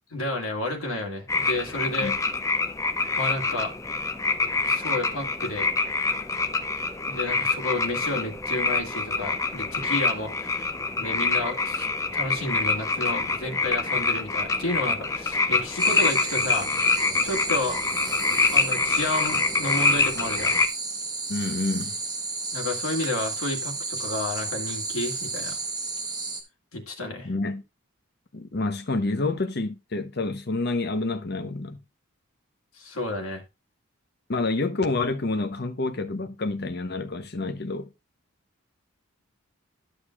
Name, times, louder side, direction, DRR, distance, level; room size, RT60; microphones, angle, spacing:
voice 1, 0.1-2.1 3.2-3.7 4.6-5.7 7.0-10.6 11.0-11.9 12.1-16.7 17.2-17.8 18.5-20.5 22.5-25.6 26.7-27.3 32.8-33.4, left 2 dB, 80° left, 1.8 m, -31 dB
sound 1, 1.3-20.7, left 3 dB, 15° left, 0.5 m, -26 dB
sound 2, 15.8-26.4, right 3 dB, 20° right, 1.0 m, -33 dB
voice 2, 21.3-22.0 27.2-27.6 28.3-31.8 34.3-37.9, left 2 dB, 50° left, 0.8 m, -28 dB
11.5 x 6.6 x 2.4 m
head